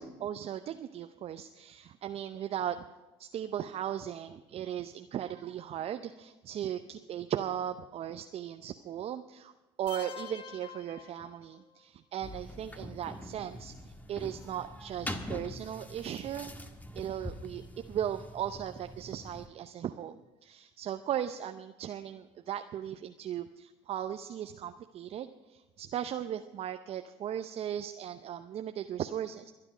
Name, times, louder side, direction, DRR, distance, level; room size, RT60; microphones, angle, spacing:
voice 1, 0.0-2.8 3.2-9.5 9.8-16.5 16.9-17.6 17.9-20.2 20.4-29.5, right 10 dB, 50° right, 8 dB, 0.7 m, -37 dB
sound 1, 9.9-11.8, left 8 dB, 40° left, 1.3 m, -47 dB
sound 2, 12.2-19.5, left 1 dB, 10° left, 1.5 m, -44 dB
22.0 x 9.8 x 5.0 m, 1.1 s
hypercardioid pair, 70°, 13 cm